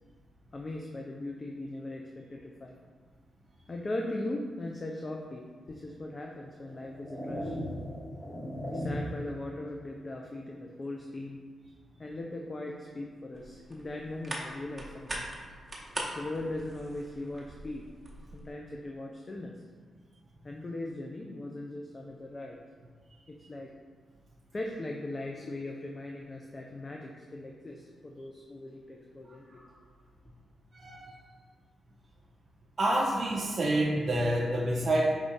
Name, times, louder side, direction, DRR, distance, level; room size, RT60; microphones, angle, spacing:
voice 1, 0.5-2.8 3.7-7.7 8.7-11.4 12.0-15.2 16.1-17.8 18.3-19.6 20.4-22.6 23.3-23.7 24.5-29.6, left 2 dB, 40° left, 1 dB, 0.4 m, -39 dB
sound 1, 5.7-5.8 6.6-9.3, equal, 15° left, 0.9 m, -37 dB
sound 2, 13.3-18.5, right 1 dB, 30° right, 0.9 m, -42 dB
voice 2, 32.8-35.0, right 1 dB, 50° right, -3 dB, 0.5 m, -27 dB
4.9 x 2.6 x 3.5 m, 1.5 s
supercardioid pair, 45°, 0 cm